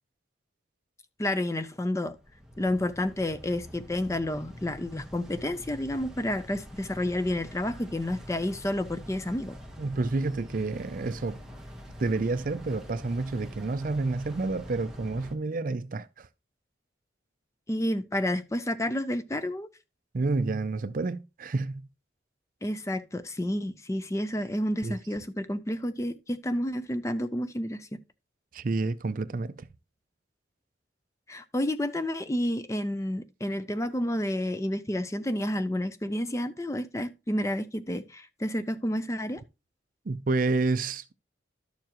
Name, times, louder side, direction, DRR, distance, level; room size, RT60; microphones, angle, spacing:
voice 1, 1.2-2.2 2.6-9.5 17.7-19.7 22.6-28.0 31.3-39.4, left 1 dB, 15° left, 0.5 m, -30 dB
sound 1, 2.2-15.3, equal, 5° right, 1.2 m, -45 dB
voice 2, 9.8-11.4 12.0-16.3 20.1-21.9 24.8-25.0 28.5-29.7 40.1-41.1, right 3 dB, 45° right, 0.4 m, -29 dB
11.5 x 6.9 x 3.0 m
head